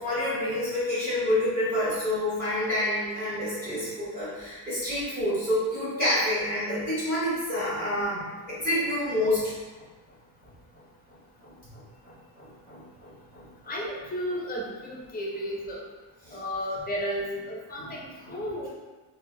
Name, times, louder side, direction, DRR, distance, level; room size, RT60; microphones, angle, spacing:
voice 1, 0.0-9.5 11.4-13.5 16.2-16.4 17.8-17.9 18.2-18.4, left 1 dB, 20° right, -12 dB, 1.2 m, -28 dB
voice 2, 13.7-15.8 16.3-18.7, equal, 20° left, -3 dB, 0.5 m, -33 dB
3.7 x 2.2 x 3.6 m, 1.3 s
cardioid pair, 165°, 43 cm